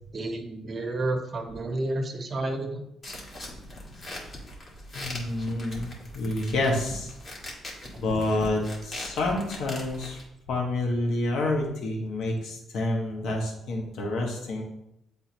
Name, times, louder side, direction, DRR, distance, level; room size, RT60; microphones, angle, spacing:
voice 1, 0.1-2.9 7.8-8.0, right 2 dB, 40° right, 5 dB, 1.0 m, -31 dB
sound 1, 3.0-10.2, left 1 dB, 40° left, 1.9 m, -41 dB
voice 2, 4.9-7.1 8.0-10.2 10.5-14.6, left 2 dB, 75° left, 1 dB, 1.4 m, -28 dB
8.5 x 3.7 x 3.0 m, 0.79 s
cardioid pair, 90°, 0 cm